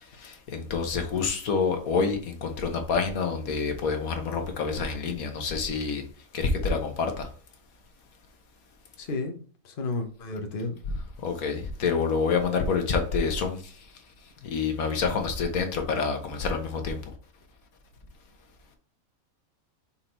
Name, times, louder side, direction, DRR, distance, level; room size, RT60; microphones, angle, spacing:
voice 1, 0.2-6.0 6.3-7.3 11.2-13.6 14.4-17.0, left 5 dB, 85° left, 5 dB, 1.6 m, -27 dB
voice 2, 9.0-9.4 9.6-10.7, left 3 dB, 40° left, 4 dB, 1.1 m, -32 dB
5.8 x 4.0 x 4.4 m, 0.42 s
omnidirectional pair, 1.4 m